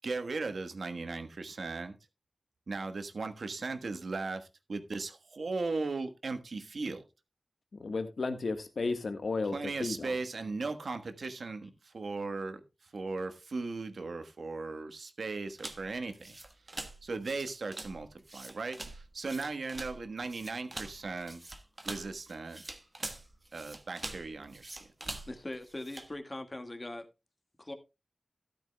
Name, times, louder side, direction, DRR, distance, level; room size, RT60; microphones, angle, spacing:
voice 1, 0.0-2.0 2.7-7.0 9.5-16.3 17.0-21.4 21.8-22.6 23.5-24.8, right 3 dB, 85° right, 1.3 m, -37 dB
voice 2, 7.7-10.1, left 3 dB, 85° left, 1.4 m, -34 dB
sound 1, 15.6-26.1, right 2 dB, 40° right, 1.4 m, -44 dB
voice 3, 25.3-27.1 27.6-27.7, left 1 dB, 30° left, 1.7 m, -41 dB
13.5 x 12.0 x 2.3 m
wide cardioid pair, 80°, 0 cm